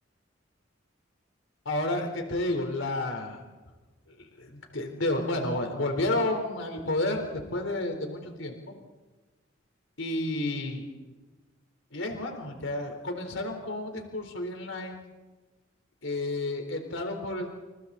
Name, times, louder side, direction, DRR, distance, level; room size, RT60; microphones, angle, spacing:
voice 1, 1.6-3.4 4.1-8.8 10.0-10.9 11.9-15.0 16.0-17.5, left 2 dB, 90° left, 4 dB, 4.1 m, -31 dB
29.5 x 29.0 x 4.2 m, 1.2 s
head